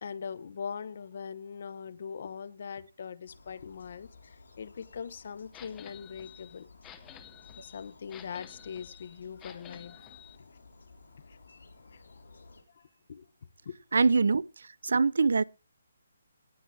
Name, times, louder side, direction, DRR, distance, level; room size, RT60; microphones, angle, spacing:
voice 1, 0.0-6.7 7.5-10.2 11.3-11.4 11.9-12.0 12.7-13.3 13.6-13.8, left 6 dB, 40° left, 0.9 m, -41 dB
sound 1, 3.3-12.6, left 3 dB, 85° left, 3.7 m, -55 dB
sound 2, 5.5-10.4, left 12 dB, 10° left, 0.6 m, -52 dB
voice 2, 13.9-14.4 14.8-15.4, right 4 dB, 65° right, 0.5 m, -23 dB
18.5 x 7.8 x 3.3 m
hypercardioid pair, 175°, 0 cm